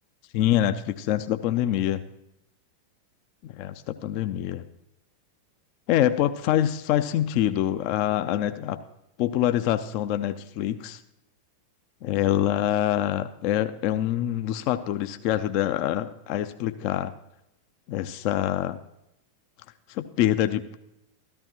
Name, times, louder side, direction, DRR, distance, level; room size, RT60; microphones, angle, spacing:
voice 1, 0.3-2.0 3.4-4.7 5.9-8.8 9.2-11.0 12.0-17.1 17.9-18.8 19.9-20.8, left 12 dB, 45° left, 10 dB, 0.5 m, -25 dB
14.0 x 12.5 x 3.0 m, 0.84 s
figure-of-eight pair, 90°, 0 cm